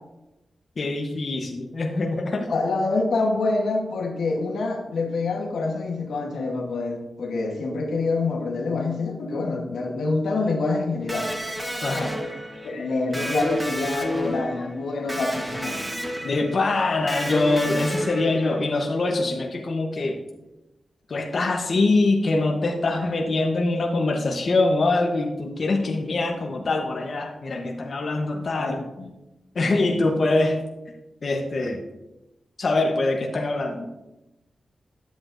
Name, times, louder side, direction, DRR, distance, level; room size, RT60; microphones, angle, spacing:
voice 1, 0.8-2.5 11.8-12.2 14.2-14.7 15.0-15.2 15.8-20.2 21.1-29.1 29.5-30.6 31.2-31.8 32.6-33.9, left 2 dB, 55° left, 2 dB, 0.9 m, -24 dB
voice 2, 2.4-11.3 12.6-15.8 28.5-28.8, left 3 dB, 90° left, 2 dB, 1.1 m, -26 dB
Electric guitar, 11.1-18.8, equal, 15° right, 1.2 m, -31 dB
10.5 x 8.0 x 2.6 m, 0.98 s
cardioid pair, 70°, 0 cm